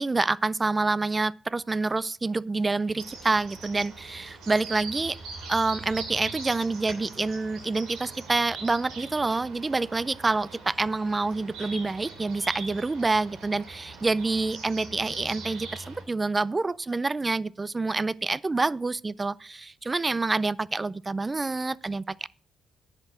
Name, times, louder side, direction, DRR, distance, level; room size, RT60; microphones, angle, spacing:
voice 1, 0.0-5.2 5.5-22.3, right 3 dB, 25° right, 0.4 m, -27 dB
sound 1, 3.0-16.0, right 4 dB, 90° right, 3.0 m, -42 dB
10.5 x 6.7 x 6.1 m
cardioid pair, 90°, 0 cm